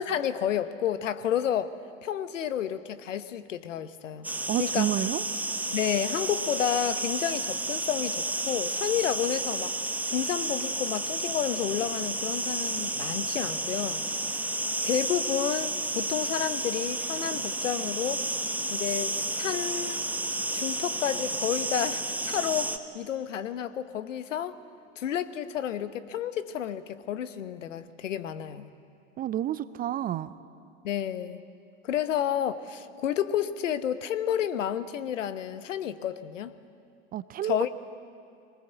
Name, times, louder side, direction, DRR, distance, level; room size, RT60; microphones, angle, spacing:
voice 1, 0.0-1.8 2.0-4.3 4.6-4.9 5.7-14.1 14.8-18.2 18.7-20.0 20.5-24.6 25.0-28.7 30.8-31.4 31.8-36.5 37.4-37.7, left 10 dB, 70° left, 12 dB, 1.1 m, -30 dB
sound 1, 4.2-22.8, right 2 dB, 5° right, 1.1 m, -31 dB
voice 2, 4.5-5.2 29.2-30.3 37.1-37.7, right 12 dB, 25° right, 16 dB, 0.5 m, -29 dB
23.0 x 19.0 x 8.2 m, 2.6 s
figure-of-eight pair, 90°, 39 cm